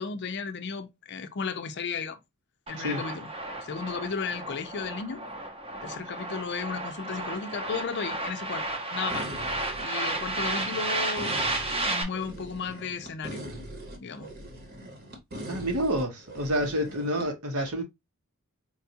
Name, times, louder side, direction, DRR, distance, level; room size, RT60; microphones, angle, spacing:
voice 1, 0.0-2.2 2.7-3.3 3.6-5.3 5.8-9.3 9.8-11.4 11.7-13.4 14.0-14.3, left 5 dB, 50° left, 0.5 m, -34 dB
sound 1, 2.7-12.0, right 2 dB, 25° right, 0.7 m, -33 dB
sound 2, 9.1-17.3, equal, 45° right, 1.1 m, -41 dB
voice 2, 15.5-17.8, equal, 85° right, 1.2 m, -28 dB
4.5 x 2.3 x 2.7 m
head